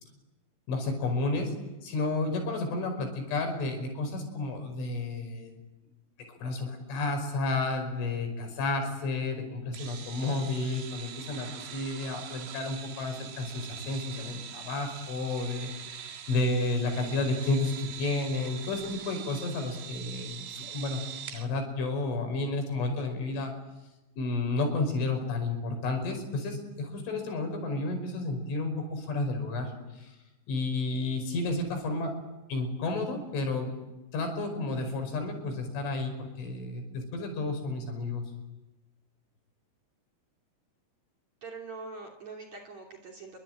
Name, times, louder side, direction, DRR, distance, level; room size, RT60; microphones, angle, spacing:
voice 1, 0.7-5.6 6.3-21.0 21.3-23.5 24.2-30.1 30.5-32.2 32.5-33.7 34.1-38.2, left 2 dB, 70° left, 5 dB, 7.7 m, -31 dB
sound 1, 9.7-21.5, right 8 dB, 65° right, 3.8 m, -43 dB
voice 2, 41.4-43.4, right 4 dB, 40° right, 4 dB, 3.6 m, -43 dB
28.0 x 23.5 x 9.0 m, 1.0 s
omnidirectional pair, 5.9 m